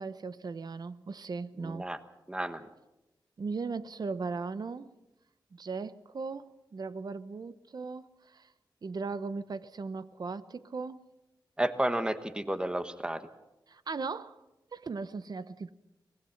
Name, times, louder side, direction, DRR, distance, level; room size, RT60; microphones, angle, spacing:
voice 1, 0.0-1.8 3.4-4.9 5.5-8.1 8.3-8.5 8.8-11.0 13.7-14.4 14.7-15.7, right 4 dB, 60° right, 0.8 m, -37 dB
voice 2, 1.6-2.0 2.3-2.6 11.6-13.2, right 1 dB, 10° right, 1.2 m, -31 dB
24.0 x 19.0 x 5.8 m
wide cardioid pair, 115°, 8 cm